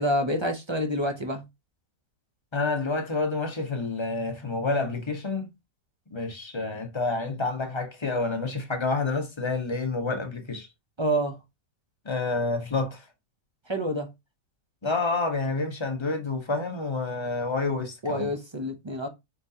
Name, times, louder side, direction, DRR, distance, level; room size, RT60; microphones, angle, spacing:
voice 1, 0.0-1.4 11.0-11.4 13.7-14.1 18.0-19.1, equal, 30° right, 0.5 m, -27 dB
voice 2, 2.5-5.5 6.1-10.7 12.0-13.0 14.8-18.3, left 3 dB, 25° left, 0.8 m, -28 dB
4.8 x 3.7 x 2.7 m
omnidirectional pair, 1.6 m